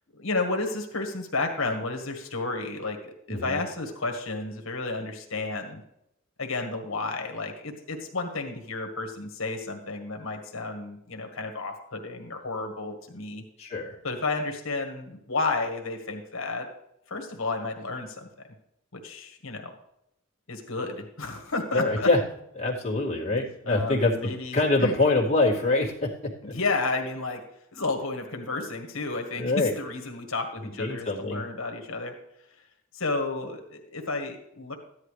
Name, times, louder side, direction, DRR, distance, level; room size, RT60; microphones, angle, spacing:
voice 1, 0.1-5.8 6.4-13.4 14.0-16.7 17.1-18.3 18.9-19.7 20.5-22.1 23.7-24.9 26.4-27.4 27.7-32.1 32.9-34.8, left 3 dB, 65° left, 4 dB, 1.6 m, -32 dB
voice 2, 3.3-3.6 13.6-14.0 21.7-22.2 22.6-26.5 29.3-29.7 30.6-31.4, left 2 dB, 30° left, -4 dB, 2.2 m, -25 dB
14.0 x 10.5 x 3.3 m, 0.81 s
head